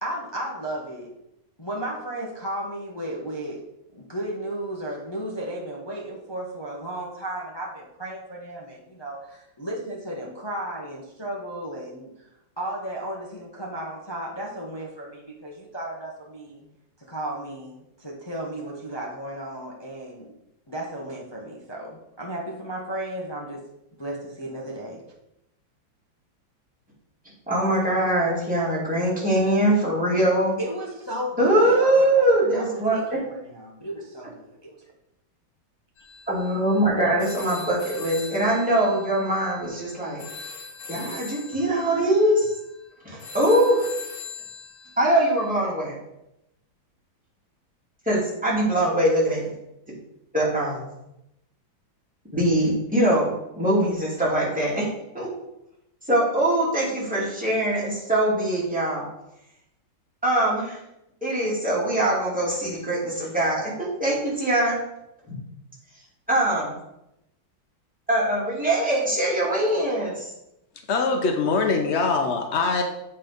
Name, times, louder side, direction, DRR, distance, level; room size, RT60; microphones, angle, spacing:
voice 1, 0.0-1.1 1.6-12.3 12.6-16.7 17.0-20.3 20.7-23.7 24.0-25.0 30.6-34.8, right 1 dB, 25° left, -2 dB, 0.6 m, -34 dB
voice 2, 27.5-30.5 31.4-33.2 36.3-40.2 40.9-42.5 43.0-43.9 45.0-46.0 48.1-49.5 50.3-50.9 52.3-54.9 55.1-55.3 56.1-59.1 60.2-60.8 61.2-64.8 65.3-65.4 66.3-66.8 68.1-70.3, right 1 dB, 5° right, -7 dB, 2.5 m, -22 dB
sound 1, 36.0-45.5, left 4 dB, 50° left, 1.6 m, -41 dB
voice 3, 70.9-72.8, left 4 dB, 90° left, 4 dB, 0.5 m, -23 dB
7.9 x 4.2 x 5.2 m, 0.85 s
omnidirectional pair, 2.2 m